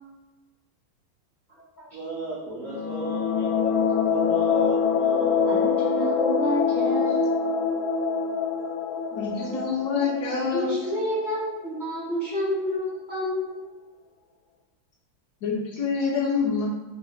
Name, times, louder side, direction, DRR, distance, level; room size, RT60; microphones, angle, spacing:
voice 1, 1.9-5.6 6.8-7.1, right 3 dB, 75° right, -4 dB, 0.7 m, -36 dB
sound 1, 2.6-11.2, left 6 dB, 90° left, 1.3 m, -25 dB
voice 2, 5.5-7.2 10.5-13.7, equal, 45° left, -9 dB, 0.6 m, -29 dB
voice 3, 9.1-10.7 15.4-16.7, left 5 dB, 70° left, -3 dB, 1.0 m, -26 dB
3.2 x 2.7 x 3.1 m, 1.2 s
omnidirectional pair, 2.0 m